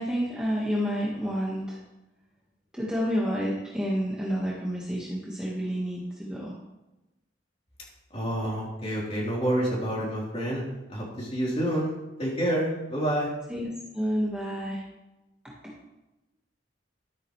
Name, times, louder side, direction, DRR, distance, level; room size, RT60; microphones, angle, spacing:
voice 1, 0.0-1.8 2.7-6.6 13.5-13.7 13.9-14.8 15.6-15.7, equal, 5° right, -5 dB, 1.5 m, -29 dB
voice 2, 8.1-10.6 10.9-13.3, right 1 dB, 30° left, -5 dB, 3.6 m, -28 dB
12.5 x 9.1 x 3.2 m, 0.99 s
head